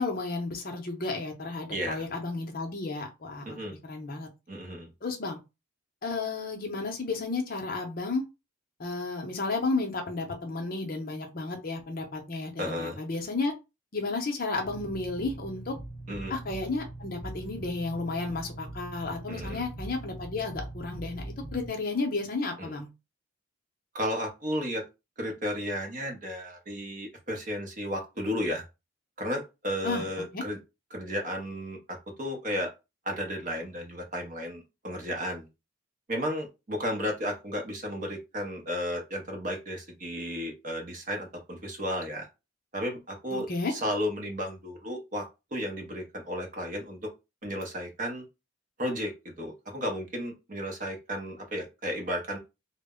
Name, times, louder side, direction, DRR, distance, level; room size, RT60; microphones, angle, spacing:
voice 1, 0.0-3.6 3.8-4.3 5.0-5.4 6.0-8.2 8.8-13.5 13.9-15.7 16.3-21.2 21.5-22.9 29.8-30.0 30.3-30.4 43.3-43.7, left 3 dB, 45° left, 2 dB, 0.6 m, -32 dB
voice 2, 1.7-2.0 3.4-3.7 4.5-4.9 12.6-13.0 16.1-16.3 19.3-19.6 22.6-22.7 23.9-24.8 25.2-28.6 29.2-30.6 30.9-32.7 33.0-35.5 36.1-42.3 42.7-45.3 45.5-47.1 47.4-48.2 48.8-52.4, equal, 40° right, 2 dB, 0.7 m, -33 dB
sound 1, 14.6-21.7, right 1 dB, 5° left, 0.9 m, -41 dB
2.1 x 2.0 x 3.5 m, 0.26 s
head